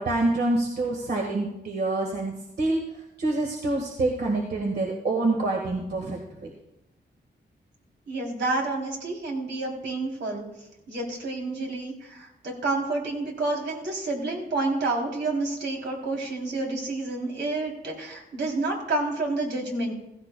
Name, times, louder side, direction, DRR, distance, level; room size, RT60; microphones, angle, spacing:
voice 1, 0.0-6.5, right 2 dB, 60° right, 0 dB, 1.6 m, -27 dB
voice 2, 8.1-10.4 10.9-19.9, right 2 dB, 80° right, 0 dB, 3.1 m, -29 dB
15.5 x 15.5 x 2.2 m, 0.89 s
wide cardioid pair, 155°, 18 cm